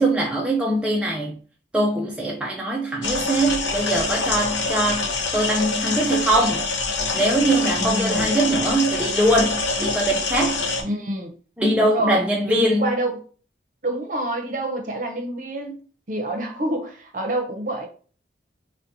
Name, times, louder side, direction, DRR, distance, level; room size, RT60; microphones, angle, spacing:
voice 1, 0.0-1.4 1.7-6.7 7.1-10.6 11.6-12.9, right 1 dB, 5° right, 0.3 m, -22 dB
sound 1, 3.0-10.8, left 3 dB, 75° left, 0.6 m, -25 dB
voice 2, 7.8-8.3 10.8-11.3 11.8-13.2 13.8-15.8 16.1-17.9, right 1 dB, 45° right, 0.7 m, -27 dB
3.9 x 2.1 x 2.7 m
head